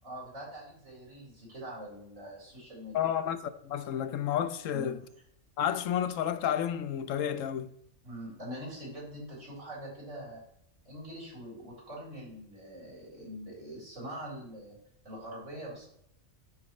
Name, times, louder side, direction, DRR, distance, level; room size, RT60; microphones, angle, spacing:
voice 1, 0.0-3.1 4.7-5.0 8.0-10.4 10.8-14.8 15.0-15.9, right 1 dB, 75° right, 4.4 m, -43 dB
voice 2, 2.9-5.0 5.6-7.7, left 9 dB, 90° left, 1.0 m, -31 dB
13.5 x 4.9 x 3.1 m
omnidirectional pair, 1.3 m